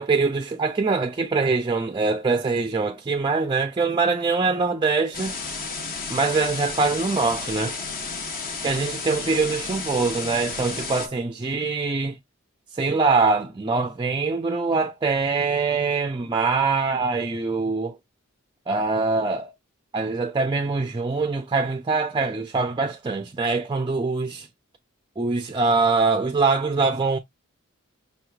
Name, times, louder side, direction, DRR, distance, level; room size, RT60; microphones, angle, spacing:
voice 1, 0.0-5.4 6.1-7.8 8.6-12.2 12.7-18.0 18.7-19.5 19.9-24.5 25.2-27.2, right 4 dB, 20° right, 0.4 m, -23 dB
sound 1, 5.1-11.1, left 4 dB, 45° left, 1.0 m, -32 dB
5.6 x 3.0 x 2.3 m
head